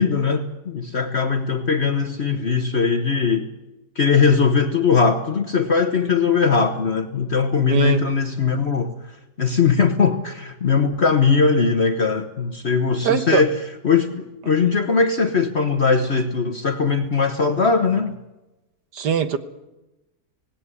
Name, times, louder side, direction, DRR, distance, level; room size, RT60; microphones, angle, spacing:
voice 1, 0.0-3.5 4.0-8.9 9.4-13.6 13.8-18.1, left 5 dB, 40° left, 7 dB, 1.4 m, -20 dB
voice 2, 7.7-8.0 13.0-13.4 18.9-19.4, right 7 dB, 80° right, 12 dB, 1.9 m, -21 dB
18.5 x 17.5 x 9.7 m, 0.98 s
omnidirectional pair, 1.8 m